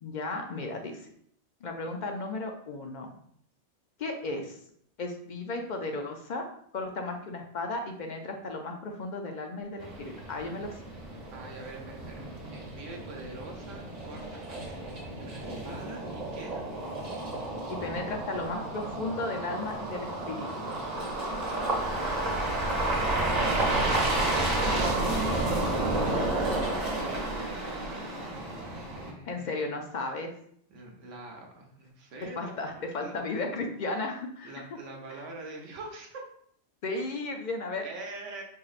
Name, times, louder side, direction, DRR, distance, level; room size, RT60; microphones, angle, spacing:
voice 1, 0.0-1.0 1.6-3.1 4.0-4.6 5.0-6.4 6.7-10.7 17.7-20.7 29.3-30.3 32.4-34.5 35.1-35.2 36.8-37.8, left 2 dB, 60° left, 3 dB, 0.5 m, -34 dB
sound 1, 9.8-29.1, right 2 dB, 35° right, 0.9 m, -31 dB
voice 2, 11.3-14.7 15.2-16.6 21.4-22.7 23.0-24.7 26.6-28.2 28.9-29.7 30.7-33.1 34.4-36.2 37.8-38.4, right 2 dB, 90° right, 1 dB, 1.2 m, -45 dB
4.7 x 3.0 x 2.4 m, 0.66 s
omnidirectional pair, 1.2 m